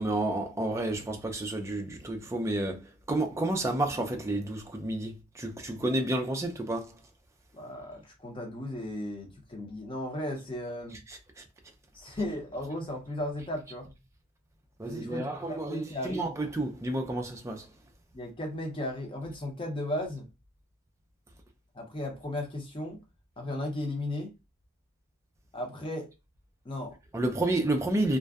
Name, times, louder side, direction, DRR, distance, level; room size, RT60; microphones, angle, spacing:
voice 1, 0.0-2.8 3.1-6.9 11.1-11.2 14.8-17.7 27.1-28.2, right 1 dB, 15° right, 0.3 m, -30 dB
voice 2, 7.5-11.0 11.9-13.9 14.9-16.3 18.1-20.3 21.7-23.0 23.4-24.3 25.5-26.1 26.6-27.0, left 1 dB, 25° left, 0.6 m, -35 dB
2.5 x 2.1 x 2.3 m
head